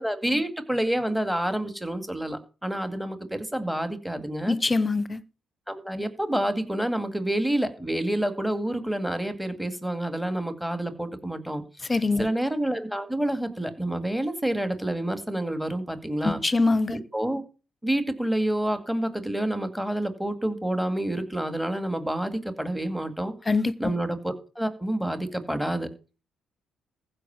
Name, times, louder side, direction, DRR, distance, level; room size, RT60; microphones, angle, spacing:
voice 1, 0.0-4.6 5.7-11.6 12.2-16.4 16.9-17.4 17.8-23.3 23.8-25.9, right 1 dB, 5° right, 2.1 m, -28 dB
voice 2, 4.5-5.2 11.9-12.3 16.2-17.0 23.5-23.9, left 3 dB, 25° left, 0.9 m, -23 dB
15.0 x 5.5 x 7.1 m
cardioid pair, 90°, 0 cm